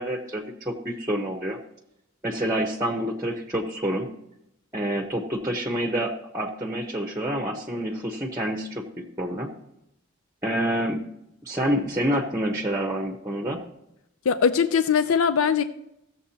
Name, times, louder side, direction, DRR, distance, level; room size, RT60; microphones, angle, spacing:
voice 1, 0.0-1.6 2.2-4.1 4.7-9.5 10.4-11.0 11.4-13.6, right 1 dB, 15° right, 0.8 m, -28 dB
voice 2, 14.3-15.6, left 6 dB, 90° left, 0.5 m, -21 dB
16.0 x 7.2 x 2.8 m
head